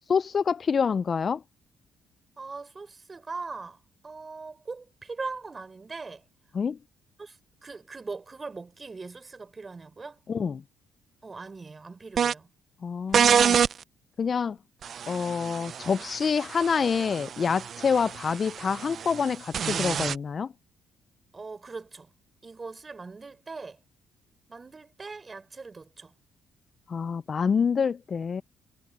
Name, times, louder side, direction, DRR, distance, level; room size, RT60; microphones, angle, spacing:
voice 1, 0.1-1.4 6.5-6.8 10.3-10.6 12.8-13.6 14.2-14.6 15.1-20.5 26.9-28.4, left 6 dB, 45° left, 0.3 m, -27 dB
voice 2, 2.4-6.2 7.2-10.2 11.2-12.5 21.3-22.1 22.4-23.8 24.5-26.1, right 4 dB, 30° right, 5.6 m, -40 dB
sound 1, 12.2-12.3 13.1-13.7 14.8-20.2, right 8 dB, 55° right, 0.3 m, -27 dB
cardioid pair, 90°, 0 cm